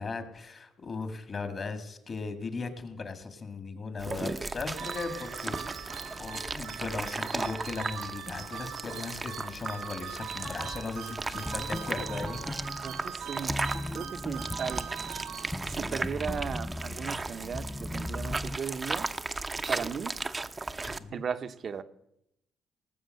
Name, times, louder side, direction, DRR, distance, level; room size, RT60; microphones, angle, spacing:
voice 1, 0.0-5.9 6.2-12.5 21.0-21.2, left 4 dB, 40° left, 8 dB, 1.9 m, -37 dB
sound 1, 4.0-21.0, right 3 dB, 25° right, 0.7 m, -36 dB
sound 2, 4.8-16.0, right 9 dB, 80° right, 1.1 m, -42 dB
sound 3, 10.4-18.6, left 1 dB, 10° left, 0.4 m, -38 dB
voice 2, 12.8-13.6 13.9-14.9 15.6-19.1 19.7-20.2 21.1-21.8, right 6 dB, 50° right, 12 dB, 0.9 m, -36 dB
18.5 x 7.1 x 6.6 m, 0.81 s
cardioid pair, 90°, 0 cm